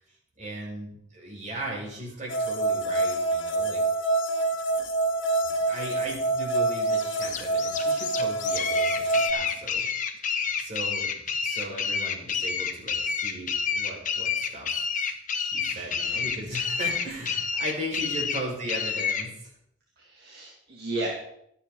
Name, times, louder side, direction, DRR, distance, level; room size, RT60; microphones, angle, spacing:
voice 1, 0.4-3.8 5.6-9.9 10.6-14.8 15.4-19.5, right 1 dB, 40° right, -2 dB, 5.5 m, -37 dB
sound 1, 2.3-9.3, right 2 dB, 85° left, 1.6 m, -26 dB
sound 2, 6.9-19.3, left 6 dB, 45° left, 1.3 m, -29 dB
voice 2, 15.7-16.2 20.0-21.1, right 2 dB, 55° right, -3 dB, 2.7 m, -35 dB
25.0 x 8.8 x 4.0 m, 0.74 s
head